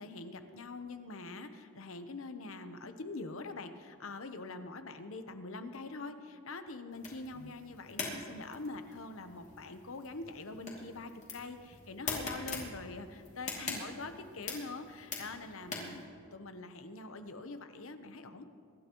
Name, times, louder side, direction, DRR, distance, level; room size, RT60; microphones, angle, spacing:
voice 1, 0.0-16.0 16.3-18.4, left 3 dB, 75° left, 8 dB, 0.9 m, -44 dB
sound 1, 6.9-16.0, left 4 dB, 35° left, 2.6 m, -43 dB
24.0 x 12.5 x 3.1 m, 2.3 s
head